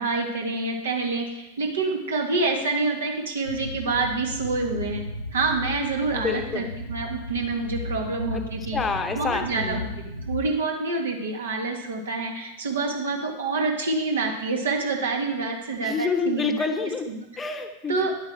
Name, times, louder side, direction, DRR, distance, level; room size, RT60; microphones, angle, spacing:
voice 1, 0.0-5.0 5.3-8.8 9.1-16.7 17.1-17.3 17.9-18.1, right 3 dB, 65° right, 2 dB, 1.7 m, -27 dB
sound 1, 3.4-10.5, left 1 dB, 85° left, 0.9 m, -35 dB
voice 2, 6.1-6.7 8.3-8.4 8.7-9.9 15.8-17.1 17.4-18.0, left 4 dB, 15° left, 6 dB, 1.0 m, -28 dB
10.5 x 8.6 x 4.6 m, 0.96 s
figure-of-eight pair, 90°, 0 cm